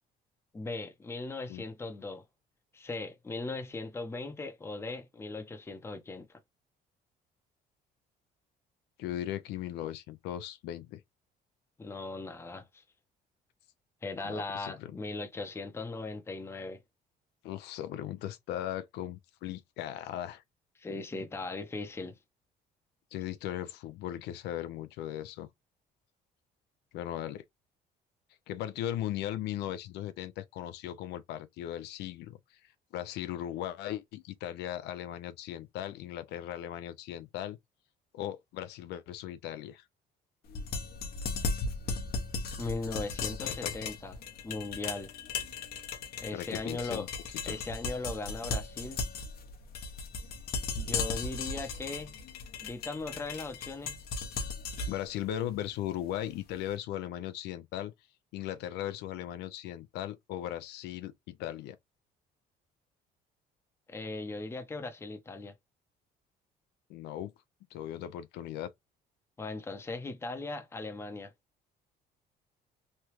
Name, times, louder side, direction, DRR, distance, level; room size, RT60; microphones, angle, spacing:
voice 1, 0.5-2.2 2.7-6.3 11.8-12.8 14.0-16.8 20.8-22.2 42.6-44.1 44.4-45.1 46.2-47.1 47.5-49.0 50.8-52.1 52.6-54.0 63.9-65.5 69.4-71.3, left 3 dB, 15° left, 0.6 m, -38 dB
voice 2, 9.0-11.0 14.2-15.0 17.4-20.4 23.1-25.5 26.9-27.4 28.5-37.6 38.1-39.8 43.4-43.8 46.3-47.1 47.4-47.6 54.9-57.9 58.3-61.1 61.4-61.8 66.9-67.3 67.7-68.7, left 12 dB, 80° left, 0.4 m, -38 dB
sound 1, 40.5-56.5, left 4 dB, 65° left, 0.8 m, -37 dB
3.1 x 2.3 x 2.9 m
cardioid pair, 110°, 17 cm